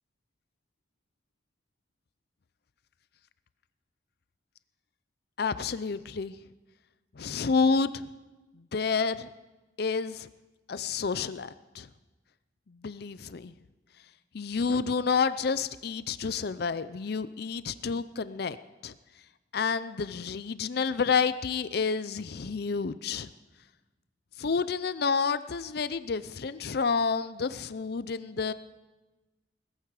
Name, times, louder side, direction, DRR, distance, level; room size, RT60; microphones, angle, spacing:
voice 1, 5.4-6.3 7.2-8.0 8.7-9.3 9.8-10.3 10.7-11.9 12.8-13.5 14.3-18.6 18.8-18.9 19.5-23.3 24.4-28.5, left 5 dB, 55° left, 14 dB, 0.5 m, -29 dB
20.0 x 14.5 x 4.9 m, 1.1 s
head